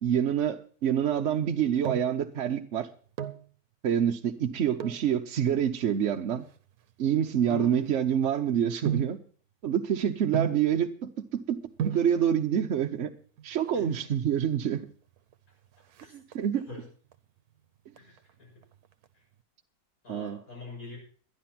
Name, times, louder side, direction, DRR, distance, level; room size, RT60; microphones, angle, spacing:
voice 1, 0.0-2.9 3.8-6.4 7.0-9.2 9.6-11.6 11.8-13.1 13.4-14.9 16.3-16.6 20.1-20.4, right 9 dB, 60° right, 5 dB, 0.9 m, -27 dB
sound 1, 1.4-2.2 3.0-3.5 4.7-5.1 5.8-8.2 8.9-9.2 10.3-10.7 11.5-11.6 11.8-12.1 13.3-13.8 14.1-14.2 14.4-14.6 14.9-15.3 15.6-16.7 17.1-17.5 17.9-19.1 19.3-19.4, right 9 dB, 75° right, 1.2 m, -35 dB
voice 2, 7.5-7.9 11.9-12.1 13.7-14.0 16.0-16.2 16.7-16.9 18.0-18.6 19.1-19.2 20.0-21.0, left 1 dB, 65° left, -4 dB, 7.1 m, -42 dB
11.0 x 11.0 x 5.8 m, 0.42 s
omnidirectional pair, 1.6 m